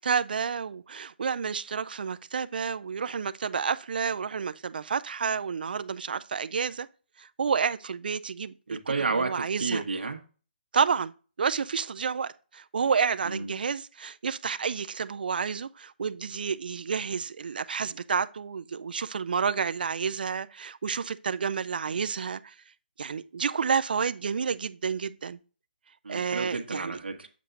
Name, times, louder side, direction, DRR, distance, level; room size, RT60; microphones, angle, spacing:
voice 1, 0.0-6.9 7.2-8.8 9.2-9.8 10.7-11.1 11.4-22.5 23.0-25.4 26.1-27.0, right 6 dB, 60° right, 0.4 m, -30 dB
voice 2, 8.7-10.2 13.3-13.5 26.0-27.3, right 4 dB, 80° right, 1.2 m, -31 dB
7.5 x 6.9 x 2.5 m
hypercardioid pair, 165°, 6 cm